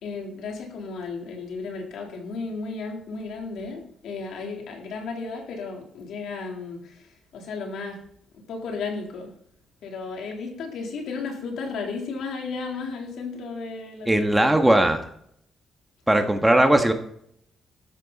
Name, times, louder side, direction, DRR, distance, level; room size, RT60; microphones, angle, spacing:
voice 1, 0.0-8.1 8.5-9.4 9.8-14.3, left 4 dB, 85° left, 3.7 m, -34 dB
voice 2, 14.1-15.0 16.1-16.9, right 1 dB, 10° right, 1.5 m, -18 dB
13.0 x 11.0 x 4.2 m
cardioid pair, 130°, 0 cm